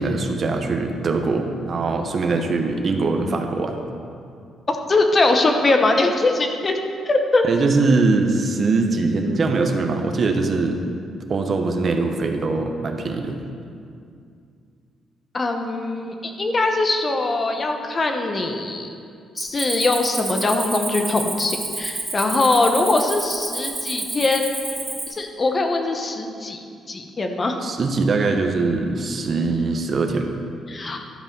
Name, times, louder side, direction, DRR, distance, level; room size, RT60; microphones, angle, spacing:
voice 1, 0.0-3.8 7.4-10.8 11.3-13.4 27.6-30.3, right 3 dB, 45° right, 4 dB, 0.9 m, -22 dB
voice 2, 4.7-6.8 7.1-7.4 15.3-18.9 19.3-26.6 26.9-27.6 30.7-31.0, left 2 dB, 35° left, 4 dB, 0.9 m, -22 dB
Cricket, 19.4-25.1, right 2 dB, 20° right, 2.5 m, -29 dB
12.0 x 5.5 x 5.2 m, 2.4 s
cardioid pair, 90°, 0 cm